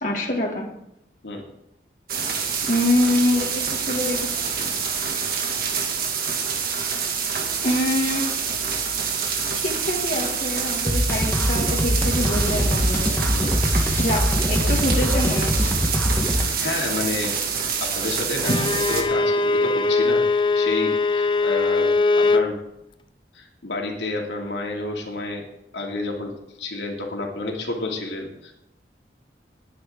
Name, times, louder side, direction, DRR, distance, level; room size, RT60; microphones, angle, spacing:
voice 1, 0.0-0.7 2.7-4.3 7.6-8.3 9.5-13.2 14.0-15.7 18.5-18.6, left 1 dB, 45° left, -1 dB, 2.2 m, -25 dB
sound 1, 2.1-19.0, right 6 dB, 55° right, 2.2 m, -26 dB
voice 2, 9.1-9.4 13.3-13.6 16.2-17.4 17.8-18.5 18.9-20.2 20.5-22.6 23.3-25.5 25.7-26.3 26.6-28.6, left 2 dB, 85° left, 0 dB, 2.6 m, -30 dB
sound 2, 10.9-16.4, equal, 10° left, 1.3 m, -23 dB
Bowed string instrument, 18.4-22.5, left 3 dB, 25° left, 0.5 m, -21 dB
19.0 x 9.4 x 3.8 m, 0.83 s
head